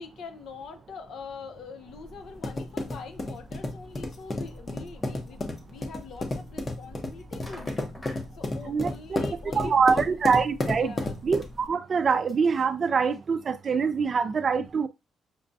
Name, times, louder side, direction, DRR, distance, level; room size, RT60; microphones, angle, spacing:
voice 1, 0.0-7.8 8.3-10.0 10.8-11.2, left 4 dB, 65° left, 0.7 m, -43 dB
sound 1, 1.9-11.7, left 2 dB, 30° left, 0.8 m, -33 dB
sound 2, 5.5-5.6 5.8-5.9 7.0-7.1 7.4-8.3 9.9-10.0 10.3-10.4 10.7-10.8 11.7-13.2 13.7-13.8 14.0-14.1, left 1 dB, 10° left, 1.1 m, -47 dB
voice 2, 8.7-9.2 9.6-11.0 11.2-14.9, right 5 dB, 45° right, 0.4 m, -24 dB
6.5 x 2.2 x 2.6 m
cardioid pair, 90°, 0 cm